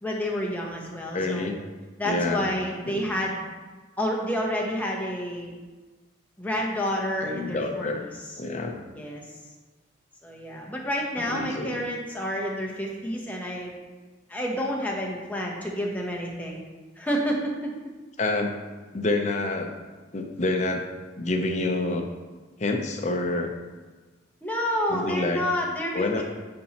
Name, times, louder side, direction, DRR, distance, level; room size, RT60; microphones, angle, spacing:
voice 1, 0.0-1.5 2.0-3.4 4.0-5.5 6.4-7.9 8.9-9.2 10.2-13.7 14.3-16.6 17.0-17.7 24.4-26.2, equal, 10° left, -2 dB, 0.8 m, -29 dB
voice 2, 1.1-1.6 2.0-2.5 2.8-3.1 7.2-8.0 8.4-8.8 11.2-11.9 18.2-18.6 18.9-19.7 20.1-20.9 21.2-22.1 22.6-23.5 24.9-25.4 25.9-26.2, left 2 dB, 35° left, 3 dB, 0.6 m, -27 dB
9.6 x 4.3 x 2.9 m, 1.3 s
head